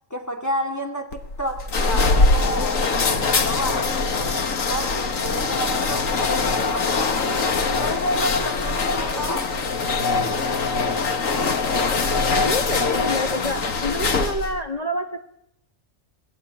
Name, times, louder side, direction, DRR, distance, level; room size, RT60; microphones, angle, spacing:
voice 1, 0.1-9.5, equal, 15° left, 2.5 m, -31 dB
sound 1, 1.1-14.6, left 4 dB, 90° left, 1.9 m, -22 dB
voice 2, 12.4-15.2, left 1 dB, 30° left, 1.4 m, -27 dB
27.5 x 18.5 x 8.5 m
omnidirectional pair, 1.3 m